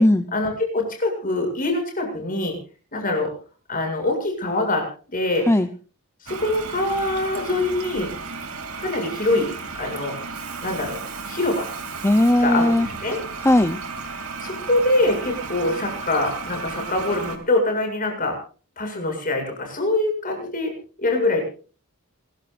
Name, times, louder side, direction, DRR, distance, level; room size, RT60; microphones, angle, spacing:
voice 1, 0.3-2.5 2.9-3.3 3.7-4.9 5.1-5.5 6.2-8.1 8.8-10.2 10.6-11.0 11.3-11.7 12.4-12.7 13.0-13.2 14.4-18.4 18.8-20.7 21.0-21.5, left 2 dB, 40° left, 3 dB, 7.6 m, -24 dB
Toilet flush, 6.3-17.4, right 4 dB, 70° right, 3.0 m, -34 dB
voice 2, 12.0-12.9 13.4-13.8, left 1 dB, 10° left, 10 dB, 0.7 m, -17 dB
27.5 x 14.5 x 2.6 m, 0.39 s
head